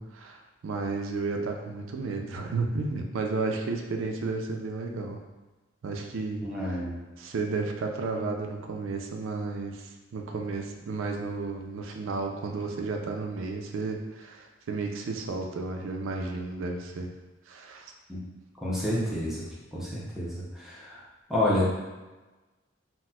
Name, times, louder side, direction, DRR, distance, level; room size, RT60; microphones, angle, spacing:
voice 1, 0.0-5.2 5.8-6.8 7.2-17.1 17.5-17.9, right 3 dB, 75° right, 3 dB, 0.4 m, -33 dB
voice 2, 6.4-6.9 18.1-18.2 18.6-19.4 19.7-21.0 21.3-21.7, left 1 dB, ahead, -7 dB, 0.6 m, -29 dB
4.0 x 2.1 x 2.3 m, 1.2 s
head